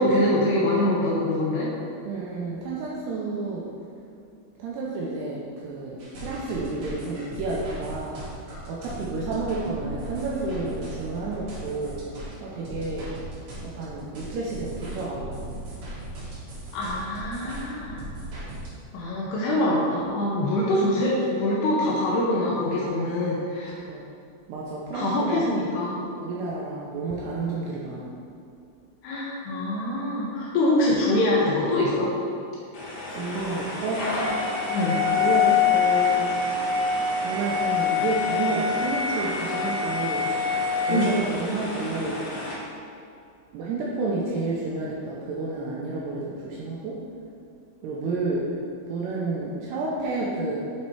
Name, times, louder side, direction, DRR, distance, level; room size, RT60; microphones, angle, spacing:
voice 1, 0.0-1.7 16.7-18.0 18.9-23.8 24.9-26.1 29.0-32.1 34.7-35.0 40.9-41.1, left 1 dB, 80° left, -4 dB, 2.5 m, -24 dB
voice 2, 2.1-3.7 4.6-8.2 8.7-12.0 12.4-13.1 13.6-15.3 23.9-24.0 24.5-25.6 26.2-28.1 33.1-34.4 35.1-36.4 37.2-42.2 43.5-47.0 47.8-48.6 48.9-50.6, right 3 dB, 85° right, -4 dB, 2.5 m, -30 dB
sound 1, 6.0-18.7, right 1 dB, 70° right, 1.7 m, -38 dB
sound 2, 32.7-42.5, left 5 dB, 55° left, 1.9 m, -25 dB
7.6 x 4.1 x 4.6 m, 2.5 s
omnidirectional pair, 5.5 m